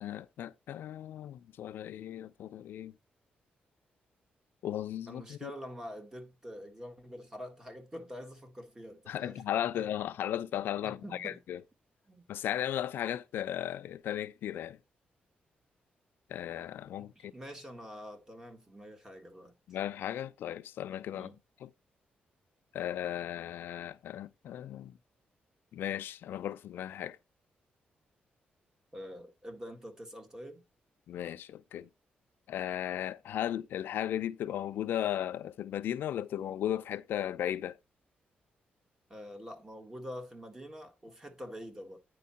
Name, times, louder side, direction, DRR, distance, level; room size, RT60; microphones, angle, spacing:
voice 1, 0.0-2.9 4.6-5.5 9.1-11.6 12.3-14.8 16.3-17.3 19.7-21.3 21.6-21.7 22.7-25.0 25.7-27.2 31.1-31.9 32.5-37.8, left 11 dB, 85° left, 0.5 m, -36 dB
voice 2, 5.1-9.4 9.7-9.9 10.8-11.4 12.1-12.3 17.0-19.5 21.1-21.4 28.9-30.6 39.1-42.0, equal, 15° right, 1.6 m, -46 dB
9.2 x 4.7 x 4.2 m
wide cardioid pair, 155°, 3 cm